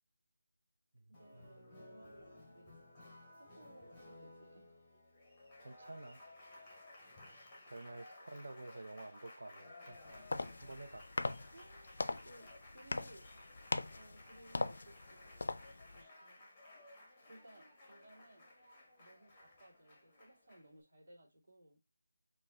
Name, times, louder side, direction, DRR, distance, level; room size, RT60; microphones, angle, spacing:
Applause, 1.1-20.8, left 1 dB, 10° left, 0.7 m, -58 dB
voice 1, 1.1-2.8 3.4-4.7 10.0-10.8 11.5-13.3 13.9-15.6 15.9-16.5 17.2-18.5 19.0-21.8, right 1 dB, 35° right, 2.4 m, -61 dB
voice 2, 5.6-6.2 7.3-10.0 10.6-11.0, right 2 dB, 60° right, 0.6 m, -50 dB
sound 1, 9.9-16.0, left 3 dB, 55° left, 0.4 m, -41 dB
6.0 x 2.3 x 3.3 m
figure-of-eight pair, 175°, 0 cm